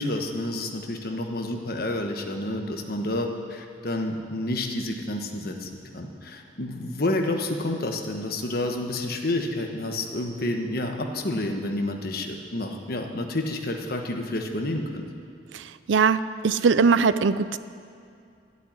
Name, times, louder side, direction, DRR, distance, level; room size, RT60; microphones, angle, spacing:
voice 1, 0.0-15.0, left 1 dB, 55° left, 3 dB, 1.3 m, -29 dB
voice 2, 15.5-17.6, right 5 dB, 80° right, 15 dB, 0.5 m, -21 dB
13.0 x 8.0 x 9.8 m, 2.4 s
head